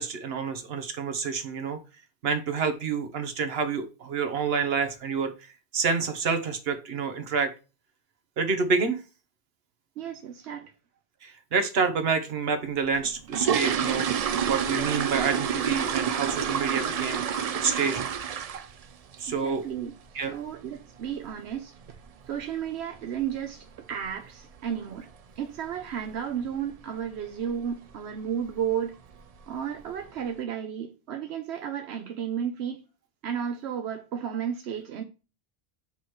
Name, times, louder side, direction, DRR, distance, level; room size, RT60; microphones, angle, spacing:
voice 1, 0.0-1.8 2.2-5.3 5.7-7.5 8.4-9.0 11.2-17.2 17.6-18.0 19.2-19.6 20.1-20.4, right 5 dB, 70° right, 1.2 m, -28 dB
voice 2, 10.0-10.7 19.3-22.0 22.3-29.0 29.5-32.8 33.2-35.0, right 8 dB, 85° right, 0.9 m, -33 dB
sound 1, 13.0-18.9 19.1-19.4 19.8-19.9 20.2-20.4 20.8-21.0 21.2-21.3 21.9-22.0 22.3-22.4 22.9-23.3 23.5-23.6 24.0-24.2 24.6-24.7 25.1-25.2 25.8-26.1 26.4-26.8 27.1-27.2 27.7-27.8 28.5-28.7 29.1-29.5 30.0-30.1, right 7 dB, 55° right, 0.4 m, -28 dB
8.7 x 3.0 x 4.7 m
omnidirectional pair, 1.1 m